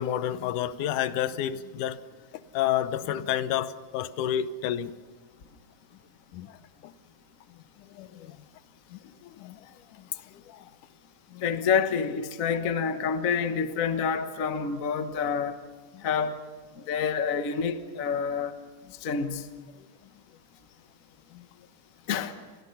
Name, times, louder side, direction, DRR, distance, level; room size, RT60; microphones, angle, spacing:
voice 1, 0.0-2.0 2.5-4.9 6.3-6.6 6.8-6.9 7.8-8.4 8.9-10.7 11.3-11.5 15.9-16.1 21.3-21.5, left 10 dB, 80° left, 2.3 m, -31 dB
voice 2, 11.4-15.5 16.0-16.4 16.9-18.5 19.0-19.4 22.1-22.3, left 6 dB, 55° left, 0.8 m, -27 dB
30.0 x 23.0 x 5.7 m
omnidirectional pair, 3.6 m